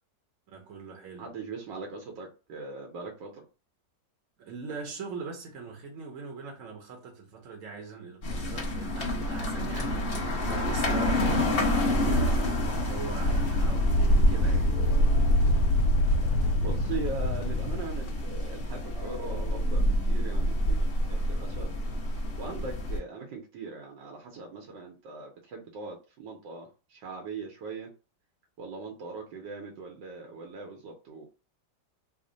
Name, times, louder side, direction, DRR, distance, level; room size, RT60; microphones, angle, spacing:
voice 1, 0.5-1.3 4.4-14.7, right 5 dB, 60° right, 1.0 m, -41 dB
voice 2, 1.1-3.5 16.6-21.7 22.4-27.9 28.6-31.3, right 4 dB, 85° right, 1.4 m, -40 dB
sound 1, 8.2-23.0, equal, 45° left, 0.8 m, -27 dB
sound 2, 13.2-18.2, left 2 dB, 80° left, 1.2 m, -26 dB
sound 3, 14.0-16.4 18.8-22.1, left 3 dB, 20° right, 0.7 m, -47 dB
3.4 x 2.1 x 3.8 m
omnidirectional pair, 1.9 m